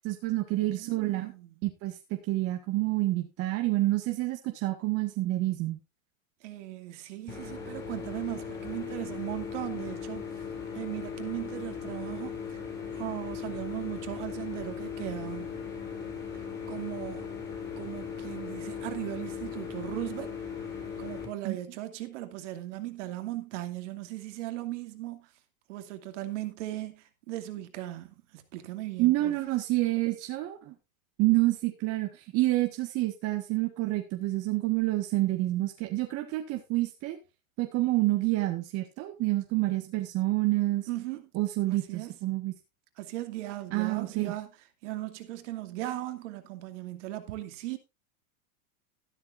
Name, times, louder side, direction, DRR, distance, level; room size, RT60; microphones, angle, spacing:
voice 1, 0.0-1.3 1.6-5.8 21.4-21.6 29.0-30.7 31.2-37.2 37.6-40.9 41.3-42.5 43.7-44.3, right 18 dB, 35° right, 1.6 m, -28 dB
voice 2, 0.6-1.5 6.4-10.3 10.7-12.6 12.9-15.6 16.3-17.3 17.8-20.3 21.0-25.3 25.7-29.4 40.9-41.2 41.7-42.1 43.0-44.5 44.8-47.8, right 15 dB, 55° right, 2.4 m, -38 dB
sound 1, 7.3-21.3, left 6 dB, 25° left, 5.3 m, -38 dB
13.0 x 12.5 x 2.5 m
supercardioid pair, 150°, 43 cm